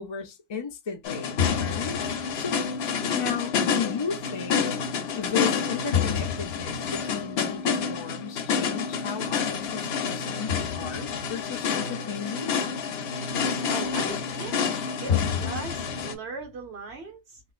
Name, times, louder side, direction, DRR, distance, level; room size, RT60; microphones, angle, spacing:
voice 1, 0.0-2.6 3.1-4.7 5.2-12.5, left 6 dB, 45° left, 0.3 m, -35 dB
sound 1, 1.0-16.1, left 6 dB, 75° left, 0.8 m, -28 dB
voice 2, 13.7-14.6 15.0-17.4, right 3 dB, 85° right, 1.3 m, -38 dB
3.0 x 3.0 x 2.4 m
omnidirectional pair, 1.1 m